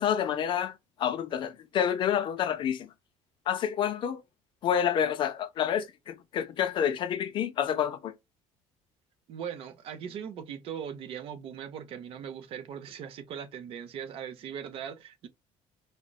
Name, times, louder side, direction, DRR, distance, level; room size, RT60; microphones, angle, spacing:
voice 1, 0.0-2.9 3.5-4.2 4.6-8.1, left 9 dB, 45° left, 0.4 m, -28 dB
voice 2, 9.3-15.3, right 8 dB, 50° right, 0.5 m, -39 dB
3.8 x 2.1 x 2.3 m
cardioid pair, 150°, 12 cm